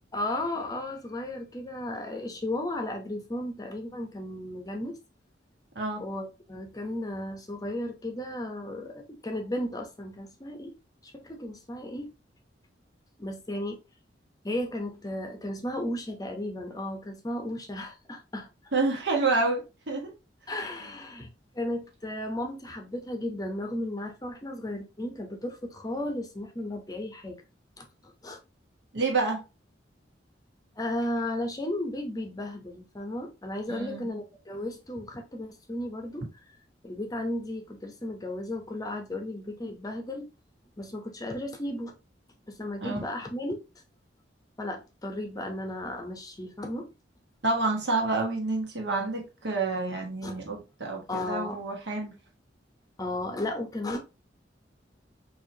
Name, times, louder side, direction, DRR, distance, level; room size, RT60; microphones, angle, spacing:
voice 1, 0.1-5.0 6.0-10.7 11.0-12.1 13.2-13.8 14.4-18.5 20.5-27.4 27.8-27.9 28.2-28.4 30.8-36.3 36.8-40.3 40.8-42.0 42.5-43.6 44.6-46.9 50.2-50.4 51.1-51.6 53.0-54.0, left 1 dB, 20° left, 0.7 m, -34 dB
voice 2, 18.7-20.1 28.9-29.4 33.7-34.1 42.8-43.0 47.4-52.1, right 3 dB, 70° right, 1.4 m, -28 dB
4.6 x 3.0 x 2.7 m
head